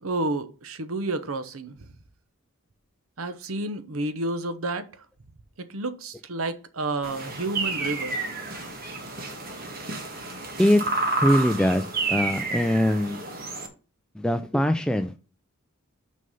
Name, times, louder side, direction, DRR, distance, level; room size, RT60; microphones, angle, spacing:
voice 1, 0.0-1.9 3.2-4.9 5.6-8.2, right 2 dB, 75° right, 0.9 m, -30 dB
sound 1, 7.0-13.7, right 3 dB, 45° right, 1.6 m, -30 dB
voice 2, 10.6-10.9 11.2-13.2 14.2-15.2, equal, 5° left, 0.3 m, -22 dB
6.3 x 5.4 x 5.5 m
head